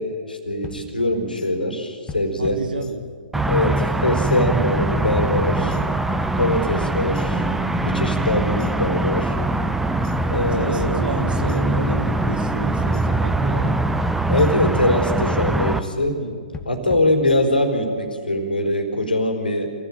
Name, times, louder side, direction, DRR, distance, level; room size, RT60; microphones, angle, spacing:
voice 1, 0.0-2.6 3.5-5.8 6.4-7.4 7.8-9.4 10.3-11.1 14.3-16.2 16.7-19.7, left 1 dB, 80° left, 5 dB, 4.6 m, -22 dB
sound 1, 0.6-1.5 2.1-3.2 3.5-4.4 5.0-6.1 6.4-7.3 7.9-9.0 9.3-10.2 10.8-11.9 12.2-13.1 13.6-14.8 15.1-16.0 16.5-17.7, left 5 dB, 15° left, 1.5 m, -38 dB
voice 2, 2.4-3.0 3.3-3.6 10.3-13.8 16.2-16.4 16.7-17.0, right 3 dB, 80° right, 1 dB, 2.9 m, -31 dB
sound 2, 3.3-15.8, right 2 dB, 5° right, 0.9 m, -22 dB
27.5 x 16.0 x 9.1 m, 2.2 s
figure-of-eight pair, 120°, 5 cm